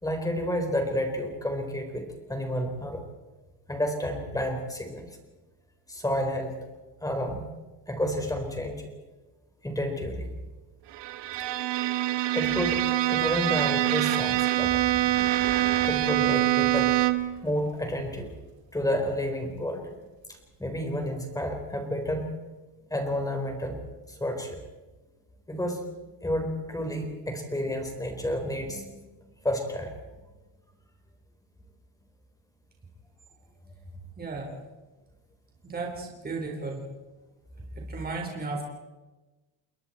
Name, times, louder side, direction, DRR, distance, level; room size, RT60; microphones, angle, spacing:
voice 1, 0.0-3.0 3.7-5.1 5.9-6.5 7.0-7.5 7.9-8.9 9.6-10.2 12.3-12.8 13.1-14.8 15.9-16.9 17.4-18.3 18.7-19.9 20.6-22.3 22.9-23.8 24.1-24.6 25.5-25.8 26.2-29.0 29.4-29.9, equal, 5° left, 4 dB, 3.9 m, -30 dB
Bowed string instrument, 10.9-17.4, right 15 dB, 65° right, 1.3 m, -25 dB
Fire, 14.5-20.9 21.6-21.7, right 4 dB, 80° right, 7.8 m, -47 dB
voice 2, 34.2-34.5 35.6-36.9 37.7-38.6, right 3 dB, 20° right, 0 dB, 4.0 m, -34 dB
29.5 x 21.0 x 4.3 m, 1.2 s
cardioid pair, 145°, 46 cm